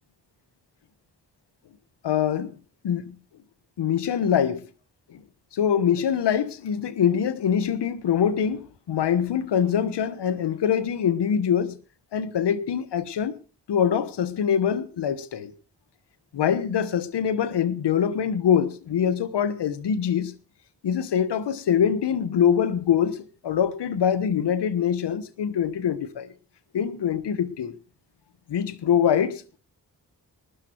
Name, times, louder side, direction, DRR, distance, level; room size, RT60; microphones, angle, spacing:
voice 1, 2.0-2.6 2.8-3.2 3.8-4.7 5.1-5.2 5.5-11.8 12.1-13.4 13.7-15.5 16.3-20.4 20.8-26.3 26.7-27.8 28.5-29.6, left 8 dB, 80° left, 1.2 m, -24 dB
19.5 x 13.0 x 4.5 m
supercardioid pair, 40°, 41 cm